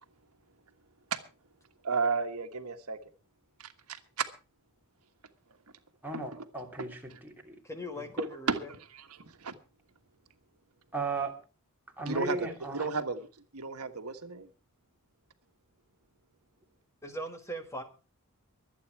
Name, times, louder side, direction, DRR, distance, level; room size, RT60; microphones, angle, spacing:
voice 1, 1.8-3.0 3.6-4.2 6.1-6.5 6.8-7.2 8.2-9.5 12.0-12.5 12.7-13.3 13.5-14.5, right 4 dB, 85° right, 1.4 m, -34 dB
voice 2, 6.0-7.6 8.0-8.1 10.9-11.3 12.0-12.9, right 3 dB, 10° right, 2.8 m, -36 dB
voice 3, 7.6-8.7 17.0-17.8, equal, 15° left, 1.7 m, -39 dB
23.5 x 8.8 x 4.6 m
head